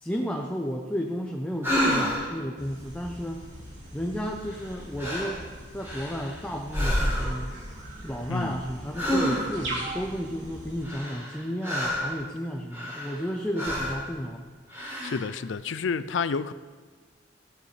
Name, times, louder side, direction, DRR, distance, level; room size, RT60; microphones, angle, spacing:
voice 1, 0.0-3.4 3.9-5.4 5.7-7.5 8.0-14.4, equal, 5° left, 0.7 m, -32 dB
sound 1, 1.6-2.4 4.5-4.7 5.0-5.4 5.8-6.4 6.7-7.5 8.9-9.7 10.8-12.2 12.7-13.3 13.5-14.0 14.7-15.3, equal, 15° right, 3.4 m, -28 dB
sound 2, 2.6-10.9, right 1 dB, 80° right, 3.2 m, -41 dB
voice 2, 15.0-16.5, left 5 dB, 80° left, 0.5 m, -29 dB
15.0 x 12.0 x 3.3 m
head